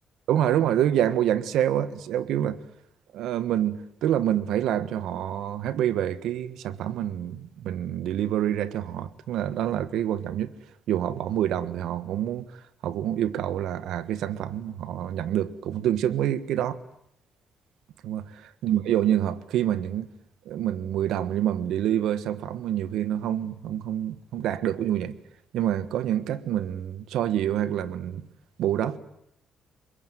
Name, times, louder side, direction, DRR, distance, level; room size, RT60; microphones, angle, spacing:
voice 1, 0.3-2.6 3.1-10.5 10.9-12.5 12.8-16.8 18.0-20.1 20.4-25.2 25.5-28.2 28.6-29.0, right 11 dB, 80° right, 1.5 m, -27 dB
25.0 x 22.0 x 9.3 m
cardioid pair, 90°, 0 cm